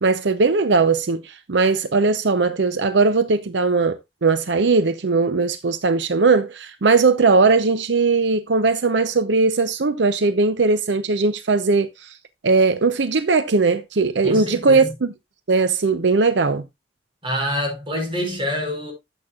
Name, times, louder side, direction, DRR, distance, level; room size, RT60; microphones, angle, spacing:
voice 1, 0.0-12.2 12.4-15.1 15.5-16.6, right 4 dB, 75° right, 0.6 m, -19 dB
voice 2, 14.2-14.9 17.2-18.9, left 1 dB, 30° right, 5.4 m, -26 dB
13.0 x 7.7 x 2.4 m
head